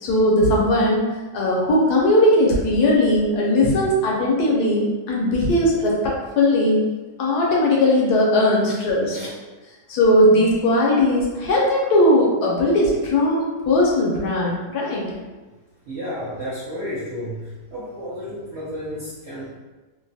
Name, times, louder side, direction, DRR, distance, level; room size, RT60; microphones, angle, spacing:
voice 1, 0.0-1.0 1.3-6.8 7.2-9.2 9.9-15.0, left 1 dB, 70° left, -3 dB, 1.1 m, -18 dB
voice 2, 15.8-19.6, equal, 60° right, -10 dB, 0.7 m, -32 dB
3.1 x 2.2 x 2.6 m, 1.2 s
omnidirectional pair, 1.8 m